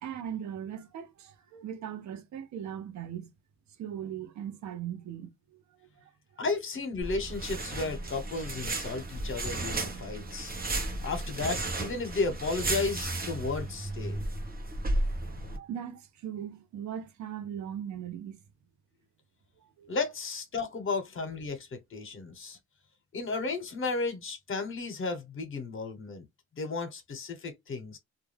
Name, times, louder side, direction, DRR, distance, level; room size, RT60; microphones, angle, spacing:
voice 1, 0.0-3.3 3.8-5.3 6.0-6.4 15.6-18.4 19.8-20.0, right 9 dB, 70° right, 0.7 m, -39 dB
voice 2, 6.4-14.2 19.9-22.6 23.1-26.2 26.6-28.0, left 3 dB, 45° left, 1.1 m, -34 dB
sound 1, 7.0-15.6, right 2 dB, 30° right, 1.0 m, -34 dB
2.4 x 2.2 x 3.3 m
cardioid pair, 90°, 30 cm